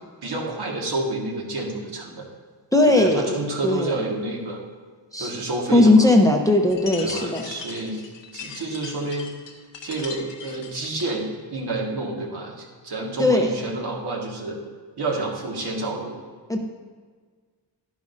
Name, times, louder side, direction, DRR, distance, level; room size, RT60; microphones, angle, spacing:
voice 1, 0.2-2.3 2.9-4.6 5.2-6.1 7.0-8.1 8.3-9.3 9.8-14.6 15.0-16.2, right 2 dB, 65° right, -1 dB, 1.9 m, -29 dB
voice 2, 2.7-4.0 5.1-5.3 5.7-7.4 13.2-13.5 16.5-16.6, left 2 dB, 10° left, 2 dB, 0.8 m, -18 dB
sound 1, 6.7-11.3, left 5 dB, 80° left, 1.1 m, -39 dB
11.0 x 10.5 x 2.7 m, 1.5 s
wide cardioid pair, 100°, 42 cm